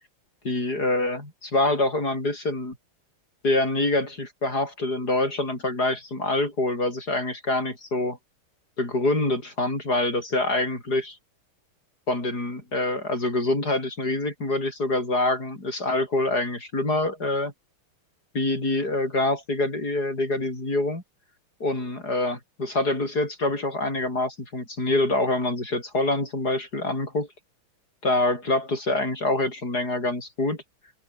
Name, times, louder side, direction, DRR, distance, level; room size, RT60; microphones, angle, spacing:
voice 1, 0.4-2.8 3.4-8.2 8.8-11.2 12.1-17.5 18.3-21.0 21.6-27.3 28.0-30.6, left 2 dB, 45° left, 7.3 m, -25 dB
open air
omnidirectional pair, 2.3 m